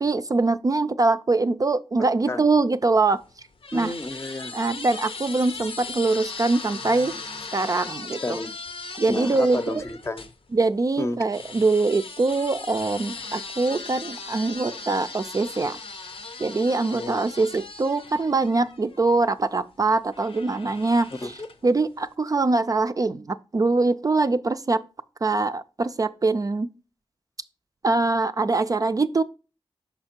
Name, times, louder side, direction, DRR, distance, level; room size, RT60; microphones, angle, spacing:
voice 1, 0.0-3.2 3.7-3.9 4.5-7.1 7.5-8.4 9.0-9.8 10.5-15.8 16.4-21.3 21.6-24.8 25.2-26.7 27.8-29.2, right 3 dB, 40° right, 0.4 m, -23 dB
sound 1, 3.0-10.3 11.3-19.2 20.1-21.7, left 4 dB, 75° left, 0.7 m, -38 dB
voice 2, 3.7-4.5 8.2-8.5 9.1-10.3 11.0-11.2 16.9-17.2 21.2-21.5, left 2 dB, 30° left, 0.7 m, -31 dB
5.7 x 5.1 x 4.4 m
cardioid pair, 55°, 10 cm